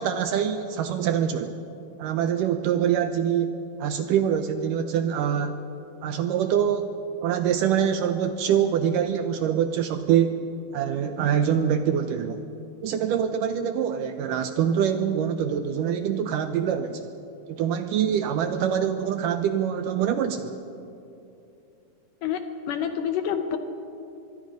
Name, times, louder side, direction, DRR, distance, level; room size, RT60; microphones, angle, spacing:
voice 1, 0.0-1.6 2.0-3.5 3.8-5.6 6.0-6.9 7.2-10.4 10.7-12.5 12.8-17.0 17.5-20.6, right 8 dB, 75° right, 8 dB, 2.1 m, -24 dB
voice 2, 22.7-23.6, left 8 dB, 70° left, 7 dB, 2.2 m, -27 dB
24.0 x 23.0 x 5.2 m, 2.7 s
omnidirectional pair, 4.4 m